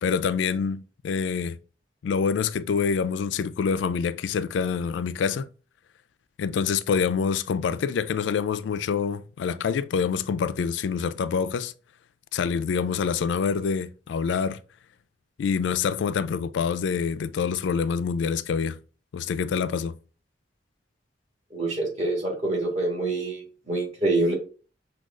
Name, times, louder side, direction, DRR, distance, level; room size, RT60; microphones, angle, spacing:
voice 1, 0.0-1.6 2.0-5.5 6.4-11.7 12.3-14.6 15.4-18.8 19.1-19.9, left 6 dB, 80° left, 0.3 m, -26 dB
voice 2, 21.5-24.3, right 2 dB, 40° right, 1.7 m, -26 dB
6.3 x 2.3 x 3.6 m
head